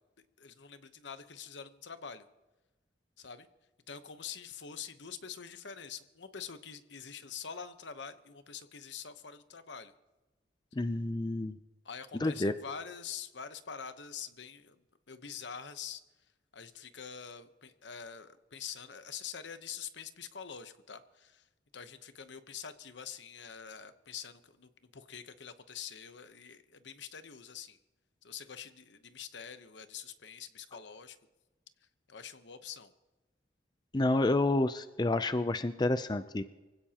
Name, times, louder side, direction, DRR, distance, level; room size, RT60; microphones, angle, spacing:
voice 1, 0.4-2.3 3.2-3.5 3.9-9.9 11.8-14.8 15.1-16.0 16.5-21.5 21.7-27.8 28.2-31.2 32.1-32.9, left 7 dB, 75° left, 10 dB, 1.0 m, -45 dB
voice 2, 10.7-11.5 12.1-12.5 33.9-36.4, left 2 dB, 25° left, 11 dB, 0.5 m, -29 dB
24.5 x 16.0 x 2.9 m, 1.1 s
head